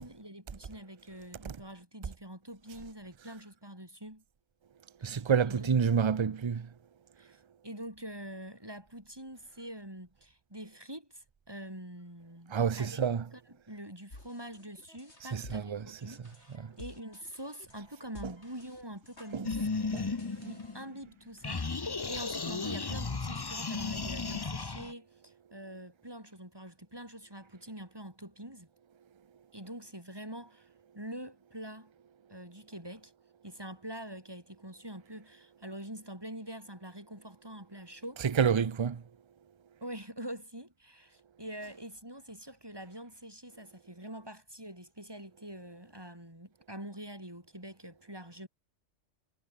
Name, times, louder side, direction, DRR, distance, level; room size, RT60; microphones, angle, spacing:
voice 1, 0.0-4.2 5.1-5.7 7.2-13.0 13.3-13.4 13.7-19.7 20.4-21.7 22.1-28.7 29.5-30.7 30.9-31.9 32.3-33.1 33.4-38.2 39.8-48.5, right 1 dB, 20° right, 6.1 m, -45 dB
voice 2, 5.0-6.7 12.5-13.3 15.3-16.2 16.6-16.7 18.2-18.3 19.3-19.5 19.9-20.1 38.2-39.0, right 7 dB, 35° right, 0.5 m, -29 dB
sound 1, 14.1-20.8, left 2 dB, 65° left, 5.6 m, -52 dB
sound 2, 19.4-21.1 21.4-24.9, left 4 dB, 25° left, 0.7 m, -35 dB
omnidirectional pair, 1.2 m